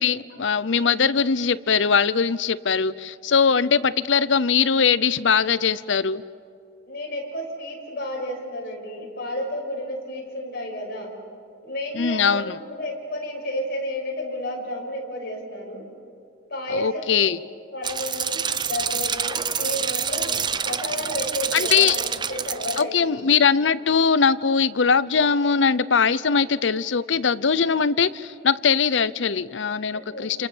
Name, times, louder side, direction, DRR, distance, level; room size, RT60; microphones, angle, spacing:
voice 1, 0.0-6.2 11.9-12.6 16.7-17.4 21.5-22.0 22.8-30.5, left 6 dB, 75° left, 17 dB, 0.7 m, -21 dB
voice 2, 6.9-11.1 11.6-15.8 16.5-17.1 17.7-23.2 29.9-30.3, left 1 dB, 55° left, 0 dB, 6.2 m, -31 dB
sound 1, 17.8-22.8, right 7 dB, 25° right, 0.6 m, -27 dB
29.0 x 28.5 x 7.3 m, 2.4 s
head